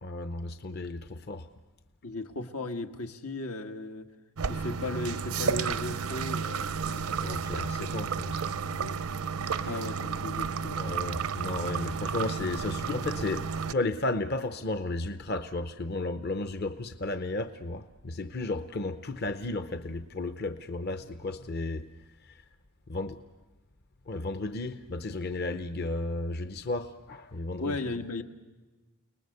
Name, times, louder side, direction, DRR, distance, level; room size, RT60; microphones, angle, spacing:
voice 1, 0.0-1.5 7.2-9.0 9.4-9.8 10.8-21.9 22.2-22.4 22.9-23.2 24.1-27.8, left 2 dB, 45° left, 0.7 m, -34 dB
voice 2, 2.0-4.0 4.5-7.2 9.6-10.8 27.6-28.2, left 2 dB, 85° left, 1.5 m, -36 dB
sound 1, 4.4-13.7, right 6 dB, 80° right, 0.7 m, -32 dB
30.0 x 20.0 x 6.6 m
head